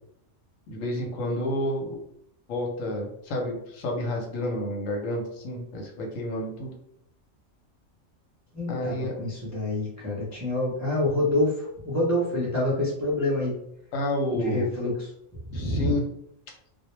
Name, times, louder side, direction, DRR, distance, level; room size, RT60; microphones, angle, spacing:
voice 1, 0.7-2.0 2.5-6.7 8.7-9.2 13.9-14.7 15.5-16.0, left 1 dB, 80° left, 1 dB, 1.0 m, -30 dB
voice 2, 8.5-13.6 14.3-15.1 15.5-16.0, left 1 dB, 25° right, -7 dB, 0.4 m, -27 dB
2.2 x 2.1 x 3.0 m, 0.75 s
omnidirectional pair, 1.3 m